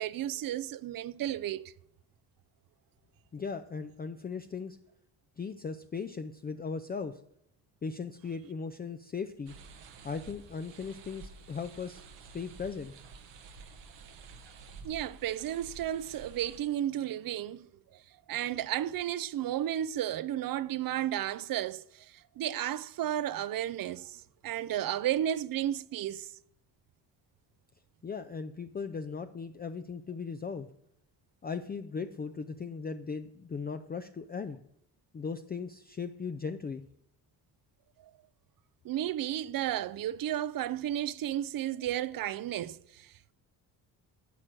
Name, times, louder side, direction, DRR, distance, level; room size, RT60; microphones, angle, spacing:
voice 1, 0.0-1.7 14.8-17.7 18.3-26.3 38.8-43.3, right 11 dB, 55° right, 0.5 m, -33 dB
voice 2, 3.3-4.8 5.4-7.2 7.8-9.5 10.0-12.0 12.3-12.9 28.0-30.7 31.4-34.6 35.1-36.8, left 5 dB, 20° left, 0.5 m, -38 dB
sound 1, 9.5-16.6, right 4 dB, 80° right, 1.3 m, -51 dB
11.0 x 4.3 x 7.6 m
cardioid pair, 75°, 43 cm